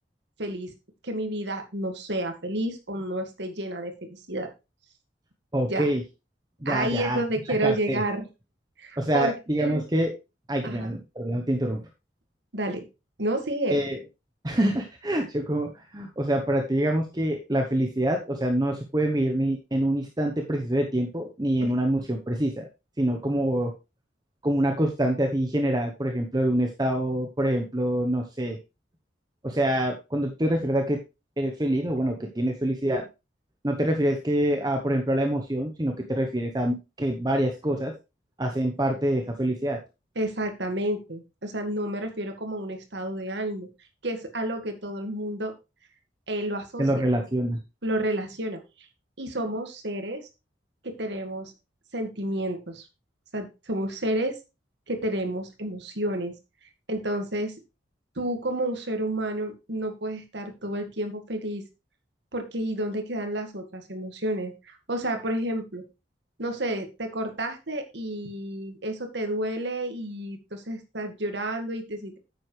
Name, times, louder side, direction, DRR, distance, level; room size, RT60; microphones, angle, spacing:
voice 1, 0.4-0.7 1.0-4.5 5.7-5.9 6.7-8.2 8.8-9.3 9.6-9.8 10.6-10.9 12.5-12.8 13.2-13.8 21.6-21.7 40.2-43.7 44.0-45.5 46.3-47.1 47.8-48.6 49.2-50.3 50.8-51.5 51.9-52.9 53.3-54.4 54.9-56.3 56.9-57.5 58.2-61.6 62.3-65.8 66.4-72.1, right 1 dB, 65° right, 5 dB, 1.9 m, -30 dB
voice 2, 5.5-6.0 6.6-7.2 7.6-8.0 9.0-10.1 10.5-11.8 13.7-14.0 14.4-22.7 23.0-23.7 24.4-28.6 29.4-31.0 31.4-33.0 33.6-37.9 38.4-39.8 46.8-47.6, right 1 dB, 20° right, 3 dB, 0.9 m, -26 dB
9.7 x 7.9 x 3.2 m, 0.27 s
head